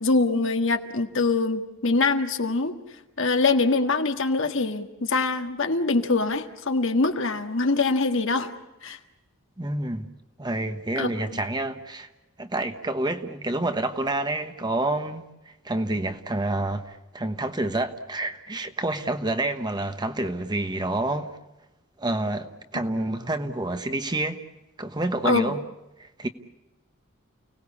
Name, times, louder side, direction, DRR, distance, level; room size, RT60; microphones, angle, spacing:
voice 1, 0.0-2.7 3.2-8.5 8.8-9.0 11.0-11.1 25.2-25.6, left 3 dB, 65° left, 1.7 m, -23 dB
voice 2, 9.6-10.1 10.4-12.1 12.4-21.3 22.0-24.4 24.8-25.6 26.0-26.3, right 2 dB, 20° right, 1.2 m, -28 dB
30.0 x 18.5 x 8.5 m
head